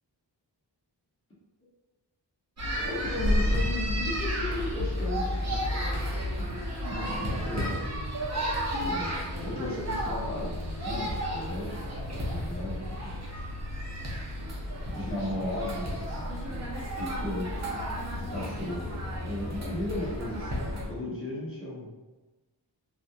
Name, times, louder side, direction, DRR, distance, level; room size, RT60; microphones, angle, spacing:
sound 1, 2.6-20.9, equal, 40° right, 0.7 m, -32 dB
voice 1, 2.8-5.6 6.1-6.6 6.9-7.8 8.8-13.1 14.8-16.7 17.0-21.9, left 1 dB, 30° left, -7 dB, 1.2 m, -36 dB
2.8 x 2.4 x 2.2 m, 1.1 s
wide cardioid pair, 70°, 44 cm